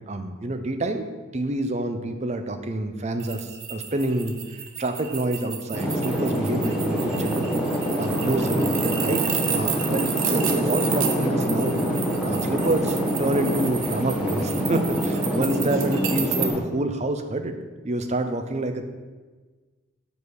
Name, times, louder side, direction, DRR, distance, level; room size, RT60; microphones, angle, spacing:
voice 1, 0.1-1.0 1.3-7.5 8.0-9.2 9.5-11.9 12.2-17.6 17.8-18.9, right 2 dB, 30° right, 7 dB, 0.5 m, -27 dB
sound 1, 3.2-16.5, right 9 dB, 70° right, 0.7 m, -32 dB
sound 2, 5.7-16.6, equal, 5° right, 0.9 m, -25 dB
5.3 x 4.8 x 6.2 m, 1.3 s
head